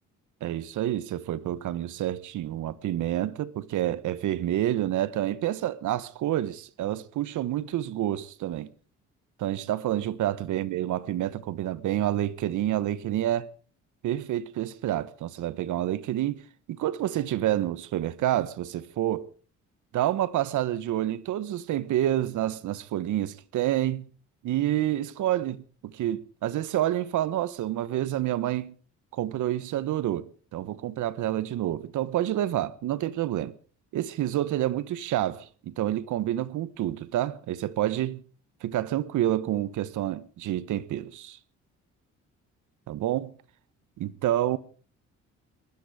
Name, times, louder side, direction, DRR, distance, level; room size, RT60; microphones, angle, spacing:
voice 1, 0.4-8.7 9.4-13.5 14.0-16.4 16.7-19.3 19.9-24.1 24.4-28.7 29.1-33.5 33.9-38.2 38.6-41.4 42.9-43.3 44.0-44.6, right 13 dB, 80° right, 1.2 m, -28 dB
20.0 x 13.0 x 4.9 m
cardioid pair, 90°, 30 cm